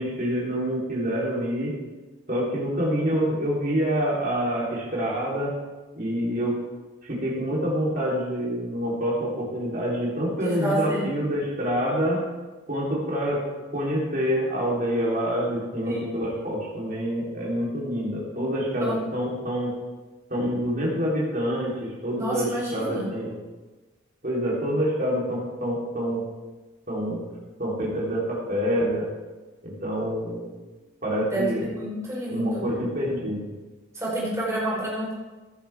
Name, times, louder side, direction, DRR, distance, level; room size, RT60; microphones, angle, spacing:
voice 1, 0.0-1.7 2.3-5.5 5.9-6.5 7.0-12.2 12.7-13.4 13.7-19.7 20.3-23.3 24.2-26.2 26.9-27.2 27.6-29.1 29.6-30.5 31.0-31.7 32.3-33.5, equal, 40° right, -5 dB, 3.9 m, -26 dB
voice 2, 10.4-11.1 15.8-16.1 18.8-19.0 22.1-23.1 31.3-32.6 33.9-35.1, right 1 dB, 15° right, -6 dB, 4.5 m, -29 dB
15.5 x 10.5 x 3.7 m, 1.2 s
head